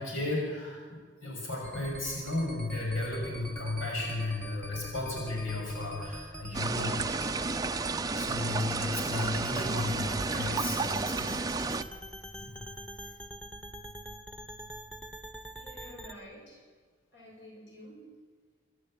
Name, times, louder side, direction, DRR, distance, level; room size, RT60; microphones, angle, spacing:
voice 1, 0.0-7.4 8.1-11.6 12.4-12.6, left 2 dB, 80° left, -1 dB, 6.4 m, -34 dB
sound 1, 1.6-16.1, equal, 5° left, 1.3 m, -44 dB
sound 2, 6.5-11.8, right 3 dB, 20° right, 0.6 m, -32 dB
voice 2, 15.6-16.7 17.1-18.1, left 1 dB, 60° left, -1 dB, 7.0 m, -49 dB
26.5 x 13.0 x 8.9 m, 1.5 s
head